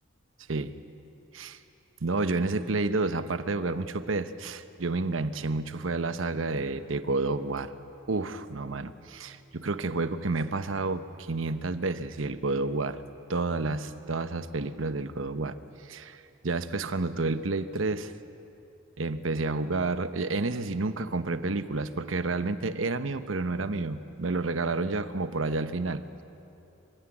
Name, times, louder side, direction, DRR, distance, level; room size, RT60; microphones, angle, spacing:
voice 1, 2.0-7.7 8.1-13.0 13.3-18.1 19.0-26.0, right 3 dB, 80° right, 11 dB, 1.0 m, -30 dB
25.0 x 16.0 x 9.8 m, 2.8 s
head